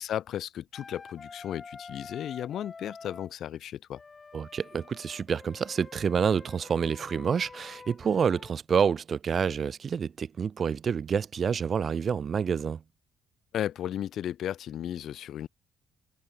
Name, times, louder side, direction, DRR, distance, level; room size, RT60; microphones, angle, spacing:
voice 1, 0.0-4.0 13.5-15.5, left 11 dB, 70° left, 1.4 m, -34 dB
Wind instrument woodwind instrument, 0.7-3.3 3.9-8.5, left 4 dB, 30° left, 3.6 m, -47 dB
voice 2, 4.3-12.8, right 6 dB, 50° right, 0.9 m, -28 dB
cardioid pair, 90°, 0 cm